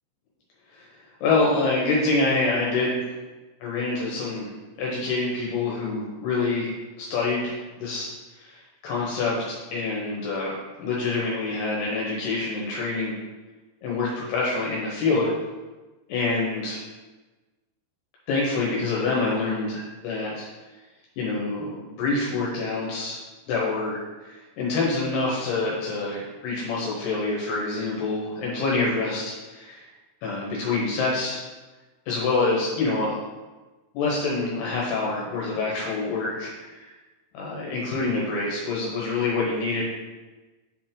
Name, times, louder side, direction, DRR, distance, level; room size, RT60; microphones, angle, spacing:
voice 1, 1.2-3.0 3.6-4.5 4.8-6.7 7.0-8.1 8.4-13.1 13.8-15.3 16.1-16.8 18.3-20.5 21.2-23.2 23.5-29.9 30.2-31.4 32.1-33.2 33.9-36.9 37.3-39.8, left 3 dB, 75° left, -4 dB, 3.0 m, -26 dB
7.3 x 5.0 x 3.8 m, 1.2 s
omnidirectional pair, 4.9 m